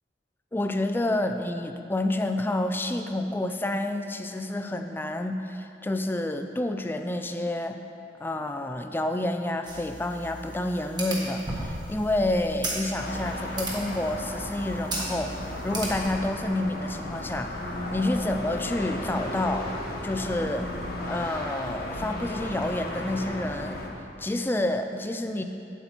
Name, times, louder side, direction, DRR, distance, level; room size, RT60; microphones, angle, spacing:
voice 1, 0.5-7.8 8.2-15.3 15.6-17.5 17.9-19.7 20.0-20.7 21.1-23.8 24.2-25.4, left 1 dB, 10° left, 6 dB, 0.3 m, -29 dB
sound 1, 9.7-16.2, right 1 dB, 25° right, 1.4 m, -36 dB
sound 2, 13.0-23.9, left 1 dB, 55° left, 1.1 m, -35 dB
8.3 x 8.1 x 4.4 m, 2.7 s
head